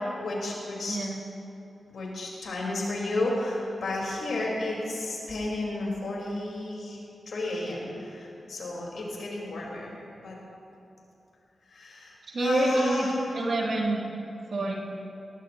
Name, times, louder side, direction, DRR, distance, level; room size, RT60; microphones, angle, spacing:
voice 1, 0.1-1.0 1.9-7.0 7.3-9.9 10.2-10.4 11.7-13.3, left 2 dB, 80° left, -3 dB, 4.3 m, -32 dB
voice 2, 0.9-1.2 12.3-14.0 14.5-14.7, right 2 dB, 70° right, -2 dB, 2.7 m, -27 dB
19.0 x 18.0 x 3.0 m, 2.8 s
cardioid pair, 45°, 0 cm